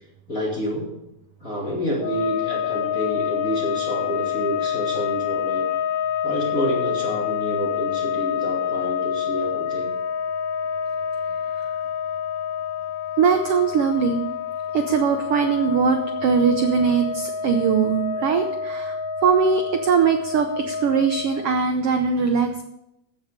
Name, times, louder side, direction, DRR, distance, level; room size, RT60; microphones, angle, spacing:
voice 1, 0.3-0.9 1.4-5.7 6.2-9.9, equal, 30° left, -4 dB, 2.4 m, -28 dB
sound 1, 2.0-21.6, left 8 dB, 70° left, 1.6 m, -27 dB
voice 2, 13.2-14.2 14.7-22.6, right 6 dB, 85° right, 6 dB, 1.3 m, -21 dB
15.0 x 7.0 x 5.1 m, 0.85 s
omnidirectional pair, 3.7 m